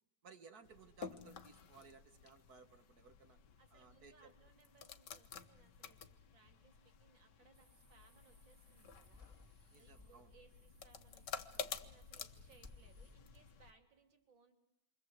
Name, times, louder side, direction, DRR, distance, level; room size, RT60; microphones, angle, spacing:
voice 1, 0.2-3.4 3.7-4.3 9.7-10.3, right 5 dB, 55° right, 8 dB, 1.9 m, -60 dB
sound 1, 0.6-13.7, left 7 dB, 65° left, 1.8 m, -52 dB
voice 2, 3.6-6.1 6.3-14.5, right 4 dB, 80° right, 5 dB, 4.1 m, -68 dB
sound 2, 7.5-13.1, left 2 dB, 5° right, 2.7 m, -63 dB
29.0 x 24.5 x 8.1 m, 0.89 s
omnidirectional pair, 2.0 m